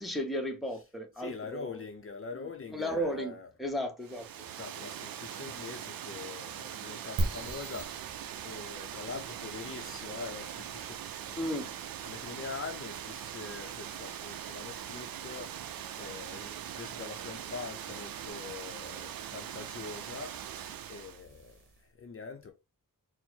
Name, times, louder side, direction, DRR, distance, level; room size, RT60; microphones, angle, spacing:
voice 1, 0.0-1.8 2.3-2.4 2.7-3.3 3.6-4.3 11.4-11.7, equal, ahead, 0.7 m, -34 dB
voice 2, 1.2-3.5 4.5-11.4 12.0-22.5, left 4 dB, 40° left, 0.5 m, -44 dB
Water, 4.0-21.2, right 10 dB, 80° right, 0.5 m, -42 dB
sound 1, 7.2-21.9, right 2 dB, 65° right, 1.0 m, -44 dB
4.4 x 2.0 x 4.3 m
wide cardioid pair, 140°, 35 cm